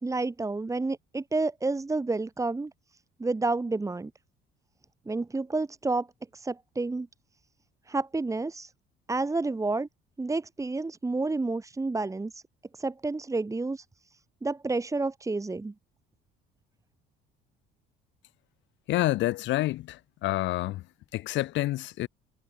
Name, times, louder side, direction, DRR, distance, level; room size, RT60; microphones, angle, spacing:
voice 1, 0.0-2.7 3.2-4.1 5.1-6.1 6.3-7.1 7.9-8.7 9.1-9.9 10.2-12.4 12.8-13.8 14.4-15.7, right 3 dB, 15° right, 2.0 m, -30 dB
voice 2, 18.9-20.9 21.1-22.1, left 16 dB, 70° left, 1.6 m, -28 dB
cardioid pair, 95°, 20 cm